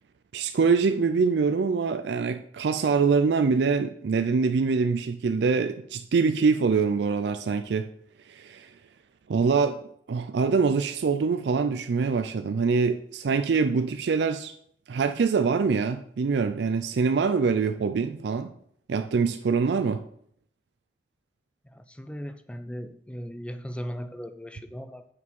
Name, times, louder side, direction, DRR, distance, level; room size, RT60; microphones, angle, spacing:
voice 1, 0.3-7.9 8.3-8.7 9.3-9.8 10.1-14.5 14.9-18.5 18.9-20.0, right 5 dB, 70° right, 8 dB, 0.4 m, -24 dB
voice 2, 21.6-25.1, equal, 5° left, 10 dB, 0.4 m, -38 dB
8.3 x 4.9 x 5.3 m, 0.68 s
head